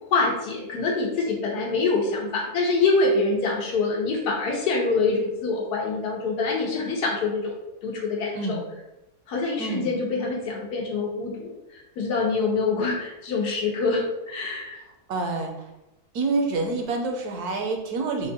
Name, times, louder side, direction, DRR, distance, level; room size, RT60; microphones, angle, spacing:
voice 1, 0.1-7.5 7.8-8.6 9.3-14.8, left 3 dB, 85° left, -1 dB, 1.5 m, -25 dB
voice 2, 9.6-9.9 15.1-15.7 16.1-18.3, right 3 dB, 75° right, 3 dB, 1.2 m, -27 dB
4.5 x 2.2 x 4.3 m, 0.93 s
omnidirectional pair, 1.7 m